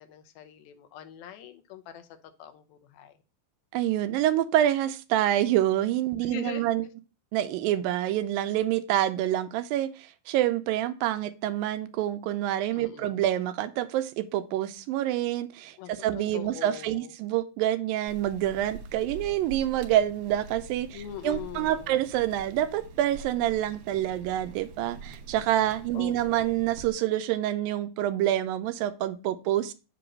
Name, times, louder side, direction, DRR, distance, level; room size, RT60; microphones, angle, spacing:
voice 1, 0.0-2.1 2.4-3.1 6.2-6.9 12.7-13.2 15.8-17.1 20.9-22.0 25.9-26.5, left 10 dB, 85° left, 2.6 m, -42 dB
voice 2, 3.7-6.8 7.3-29.7, right 12 dB, 80° right, 2.2 m, -27 dB
sound 1, 18.1-26.9, right 4 dB, 65° right, 2.6 m, -45 dB
7.7 x 3.0 x 6.0 m
omnidirectional pair, 4.1 m